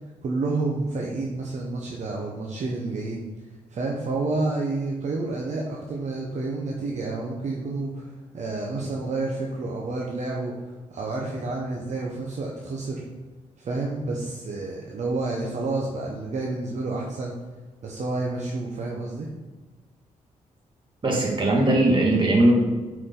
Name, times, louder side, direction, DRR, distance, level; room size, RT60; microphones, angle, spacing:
voice 1, 0.2-3.2 3.7-10.5 10.9-13.1 13.6-17.4 17.8-19.3, right 3 dB, 60° right, -1 dB, 1.1 m, -29 dB
voice 2, 21.0-22.5, right 1 dB, 35° right, -1 dB, 2.1 m, -19 dB
8.1 x 5.0 x 3.9 m, 1.3 s
cardioid pair, 85°, 14 cm